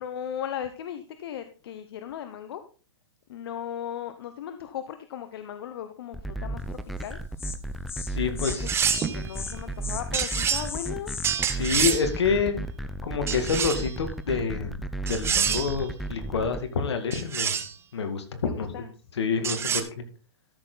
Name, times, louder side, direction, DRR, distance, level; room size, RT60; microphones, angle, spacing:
voice 1, 0.0-2.6 3.3-7.2 8.2-8.6 8.9-11.1 18.4-18.9 19.4-19.8, left 9 dB, 65° left, 10 dB, 1.0 m, -37 dB
sound 1, 6.1-16.6, right 2 dB, ahead, 0.6 m, -34 dB
Insect, 7.0-7.1 7.4-7.6 7.9-8.1 8.4-8.6 8.8-9.1 9.3-9.5 9.8-11.3, left 6 dB, 15° left, 1.1 m, -36 dB
voice 2, 8.1-9.0 11.5-12.6 13.0-14.7 15.0-17.6 17.9-18.7 19.2-20.0, left 5 dB, 80° left, 8 dB, 2.3 m, -28 dB
sound 2, 8.4-9.2 10.1-10.7 11.2-12.1 13.3-13.9 15.1-15.8 17.1-17.7 19.4-19.8, right 8 dB, 15° right, 1.0 m, -27 dB
13.0 x 6.8 x 4.0 m, 0.36 s
hypercardioid pair, 130°, 14 cm